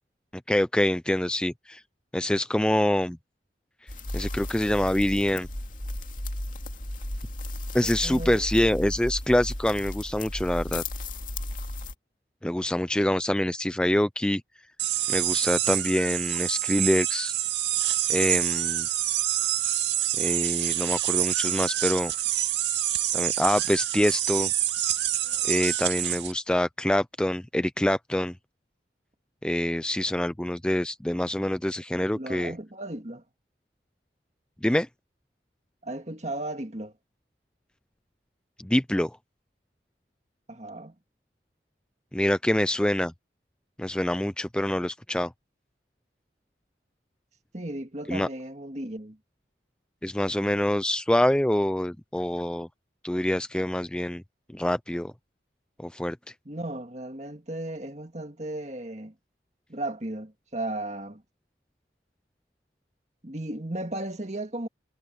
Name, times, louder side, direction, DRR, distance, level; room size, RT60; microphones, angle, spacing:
voice 1, 0.5-1.8 2.1-3.2 4.1-5.5 7.7-10.8 12.4-14.4 15.1-17.3 18.1-18.9 20.2-22.1 23.1-24.5 25.4-28.3 29.4-32.5 34.6-34.9 38.6-39.2 42.1-43.1 43.8-45.3 48.1-48.3 50.0-52.7 53.0-54.2 54.5-55.1 55.8-56.2, left 1 dB, 5° left, 0.3 m, -25 dB
sound 1, 3.9-11.9, left 1 dB, 45° left, 2.6 m, -34 dB
voice 2, 8.0-8.5 31.9-33.2 35.8-36.9 40.5-40.9 47.5-49.2 56.5-59.1 59.7-61.2 63.2-64.7, right 1 dB, 40° right, 2.0 m, -35 dB
sound 2, 14.8-26.3, right 12 dB, 75° right, 2.1 m, -27 dB
head